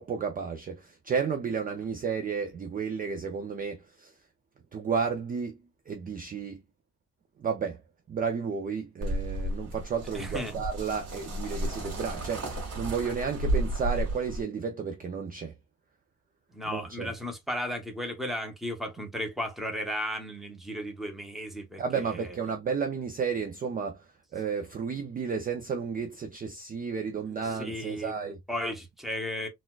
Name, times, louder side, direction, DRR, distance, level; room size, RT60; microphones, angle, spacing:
voice 1, 0.0-4.1 4.7-5.6 5.9-6.6 7.4-7.8 8.1-15.5 16.7-17.1 21.8-24.0 24.3-28.4, right 6 dB, 30° right, 0.4 m, -32 dB
sound 1, 9.0-14.4, right 1 dB, 50° right, 1.9 m, -32 dB
voice 2, 10.1-10.5 16.5-22.3 27.3-28.1 28.5-29.5, left 1 dB, ahead, 0.8 m, -35 dB
4.0 x 2.3 x 2.3 m
cardioid pair, 155°, 32 cm